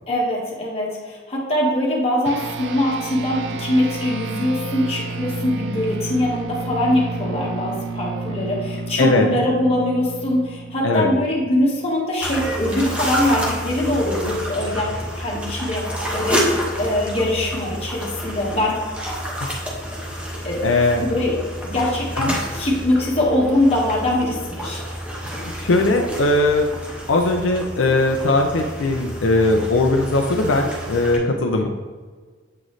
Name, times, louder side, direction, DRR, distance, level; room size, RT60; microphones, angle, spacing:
voice 1, 0.1-18.8 20.4-20.7 21.0-21.4 21.6-24.8, left 1 dB, 30° left, -4 dB, 1.4 m, -22 dB
sound 1, 2.2-12.0, right 2 dB, 60° right, 0.4 m, -31 dB
sound 2, 12.2-31.2, equal, 5° right, 0.9 m, -29 dB
voice 2, 20.6-21.0 22.2-22.4 25.6-26.7 27.1-31.7, left 2 dB, 80° left, 3 dB, 0.5 m, -19 dB
7.6 x 4.0 x 3.1 m, 1.5 s
head